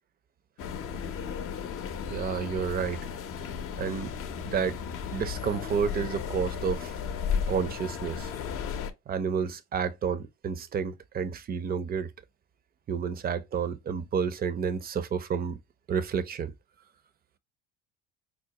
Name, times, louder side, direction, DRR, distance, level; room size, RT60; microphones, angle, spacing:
sound 1, 0.6-8.9, left 7 dB, 45° left, 0.6 m, -34 dB
voice 1, 2.1-3.0 3.8-4.1 4.4-4.8 5.1-6.9 7.5-8.3 9.1-12.1 12.9-15.6 15.9-16.5, right 6 dB, 30° right, 0.5 m, -30 dB
4.7 x 2.1 x 2.9 m
supercardioid pair, 90°, 30 cm